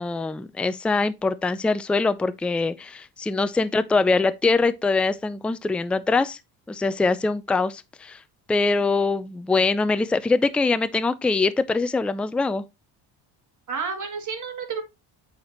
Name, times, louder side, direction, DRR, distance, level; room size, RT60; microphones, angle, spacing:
voice 1, 0.0-6.4 6.7-8.2 8.5-12.6, left 3 dB, 5° left, 0.3 m, -23 dB
voice 2, 13.7-14.8, right 5 dB, 50° right, 2.4 m, -31 dB
8.5 x 4.4 x 3.0 m
cardioid pair, 95°, 40 cm